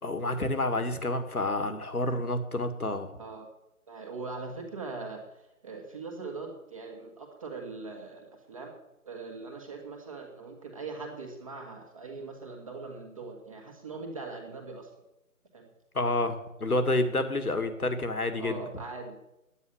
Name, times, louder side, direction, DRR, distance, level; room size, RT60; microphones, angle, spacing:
voice 1, 0.0-3.1 15.9-18.6, left 2 dB, 85° left, 9 dB, 2.2 m, -29 dB
voice 2, 3.9-8.7 9.0-14.9 15.5-15.7 18.4-19.1, right 3 dB, 25° right, 1 dB, 1.7 m, -41 dB
9.7 x 9.4 x 9.8 m, 0.89 s
figure-of-eight pair, 165°, 43 cm